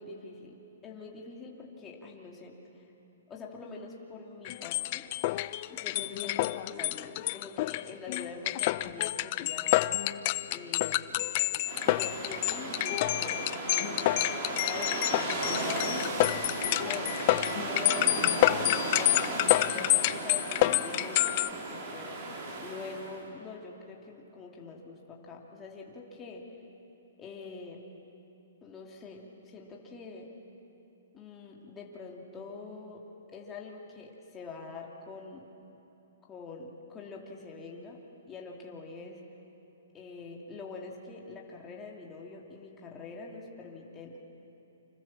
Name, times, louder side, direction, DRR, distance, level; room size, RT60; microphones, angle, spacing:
voice 1, 0.0-2.8 3.3-5.1 5.7-10.0 10.5-11.2 11.8-14.1 14.5-16.0 16.6-22.2 22.6-26.5 27.2-27.8 28.6-30.3 31.1-33.0 33.3-35.5 36.3-38.0 38.3-39.2 39.9-44.2, left 4 dB, 15° left, -1 dB, 2.8 m, -44 dB
sound 1, 4.4-21.5, left 17 dB, 35° left, 0.6 m, -28 dB
sound 2, 11.7-23.2, right 2 dB, 40° right, 5.2 m, -35 dB
30.0 x 25.5 x 7.5 m, 3.0 s
hypercardioid pair, 155°, 0 cm